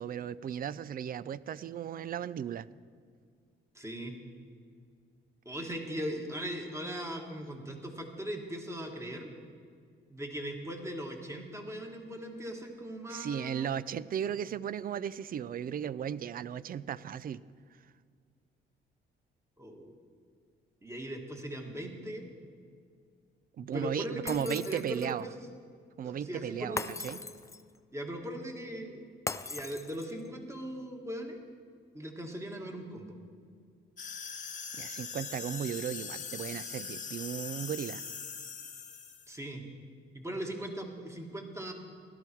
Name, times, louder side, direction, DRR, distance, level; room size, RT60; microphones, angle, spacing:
voice 1, 0.0-2.7 13.1-17.4 23.6-25.2 26.0-26.8 27.0-27.2 34.7-38.0, right 9 dB, 45° right, 18 dB, 0.4 m, -36 dB
voice 2, 3.7-4.1 5.5-9.3 10.1-13.7 19.6-19.9 20.8-22.3 23.6-25.5 26.0-26.9 27.9-29.0 29.5-31.4 31.9-33.2 39.3-39.6 40.1-41.7, equal, 15° right, 2 dB, 1.9 m, -39 dB
Shatter, 24.3-25.2 26.8-27.8 29.3-30.3, left 3 dB, 15° left, 0.5 m, -39 dB
sound 1, 34.0-39.3, left 6 dB, 40° left, 1.1 m, -41 dB
16.5 x 12.0 x 4.6 m, 2.1 s
cardioid pair, 90°, 20 cm